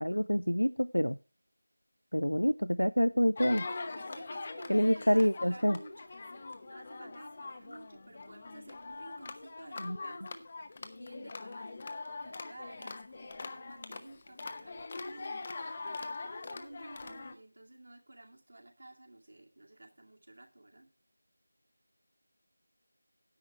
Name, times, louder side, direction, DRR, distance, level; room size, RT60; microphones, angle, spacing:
voice 1, 0.0-1.2 2.1-3.6 4.7-5.8 9.8-10.0, equal, 85° left, 15 dB, 0.5 m, -27 dB
sound 1, 3.4-17.3, left 3 dB, 30° left, 0.9 m, -43 dB
voice 2, 4.0-6.2 6.6-10.4 10.8-11.7 12.0-15.4 16.0-20.9, right 2 dB, 55° right, 1 dB, 2.2 m, -52 dB
10.0 x 8.3 x 4.5 m, 0.32 s
figure-of-eight pair, 170°, 0 cm